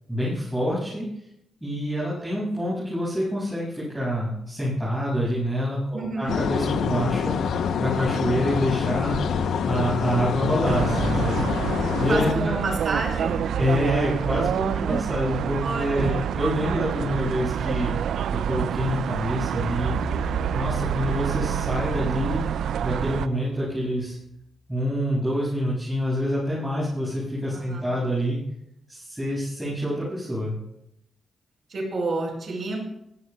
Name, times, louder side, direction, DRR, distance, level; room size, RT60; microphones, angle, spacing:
voice 1, 0.1-1.1 1.6-7.4 7.8-9.2 9.6-11.4 12.0-12.5 13.6-17.9 18.3-19.9 20.5-22.4 22.8-24.1 24.7-28.4 28.9-30.5, equal, 5° right, -9 dB, 6.7 m, -26 dB
voice 2, 2.1-2.4 5.9-6.3 12.1-13.4 15.6-16.3 27.5-27.9 31.7-32.8, right 3 dB, 45° right, 0 dB, 5.4 m, -29 dB
sound 1, 6.3-12.3, left 6 dB, 85° left, 0.8 m, -26 dB
sound 2, 10.6-23.3, right 9 dB, 80° right, 0.4 m, -27 dB
sound 3, 19.5-23.9, left 2 dB, 20° left, 4.6 m, -38 dB
21.0 x 15.5 x 2.3 m, 0.79 s
wide cardioid pair, 145°, 0 cm